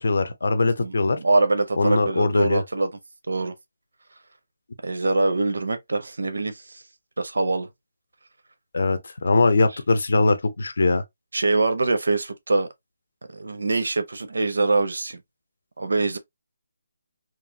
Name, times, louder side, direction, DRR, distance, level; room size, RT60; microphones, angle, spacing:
voice 1, 0.0-1.2 1.8-2.6 8.7-11.0, left 3 dB, 50° left, 0.5 m, -21 dB
voice 2, 0.8-2.9 3.3-3.5 4.8-6.8 7.2-7.7 11.3-12.7 13.3-15.2 15.8-16.2, right 3 dB, 75° right, 0.6 m, -24 dB
3.0 x 2.4 x 2.7 m
hypercardioid pair, 180°, 0 cm